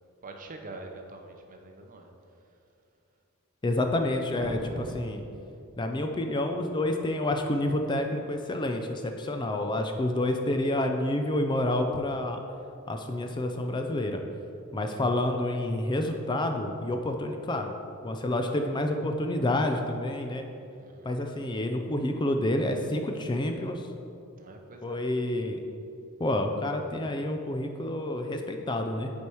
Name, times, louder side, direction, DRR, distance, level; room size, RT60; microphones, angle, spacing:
voice 1, 0.2-2.1 4.4-5.1 20.8-21.1 24.4-25.1, right 2 dB, 40° right, 4 dB, 0.7 m, -42 dB
voice 2, 3.6-4.6 4.9-5.2 5.8-12.4 12.9-14.2 14.7-17.7 18.0-20.4 21.0-23.9 24.8-25.6 26.2-29.1, left 1 dB, 20° left, 5 dB, 0.4 m, -28 dB
8.4 x 4.5 x 4.8 m, 2.6 s
head